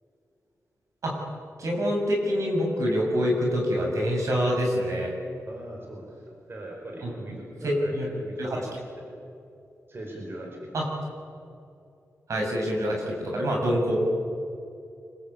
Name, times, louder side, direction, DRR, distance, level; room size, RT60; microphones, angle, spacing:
voice 1, 1.6-5.1 7.0-7.1 7.6-8.0 8.4-8.6 10.7-10.9 12.3-14.0, equal, 75° right, 0 dB, 7.2 m, -26 dB
voice 2, 5.4-6.2 6.5-9.2 9.9-10.7, right 1 dB, 45° right, 0 dB, 5.1 m, -40 dB
26.5 x 21.0 x 8.8 m, 2.6 s
wide cardioid pair, 105°, 5 cm